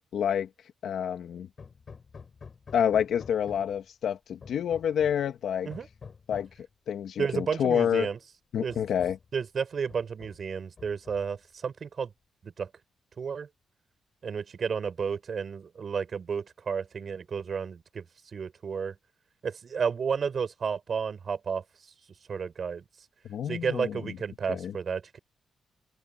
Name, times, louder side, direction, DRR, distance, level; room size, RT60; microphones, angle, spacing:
voice 1, 0.1-0.5 0.8-1.5 2.7-5.7 6.3-6.5 6.9-8.1 8.5-9.2 23.3-23.9 24.5-24.7, left 8 dB, 65° left, 2.3 m, -28 dB
Hammer, 1.6-3.9 4.4-5.3 5.7-6.6 7.6-7.7 8.2-8.3 8.7-9.3 9.9-10.5 10.8-11.4, left 5 dB, 35° left, 7.7 m, -48 dB
voice 2, 7.2-8.2 8.6-8.8 9.3-12.1 12.4-12.7 13.2-13.5 14.2-18.1 18.3-18.9 19.4-21.6 22.3-22.8 23.5-25.2, right 6 dB, 40° right, 6.0 m, -32 dB
open air
wide cardioid pair, 155°, 0 cm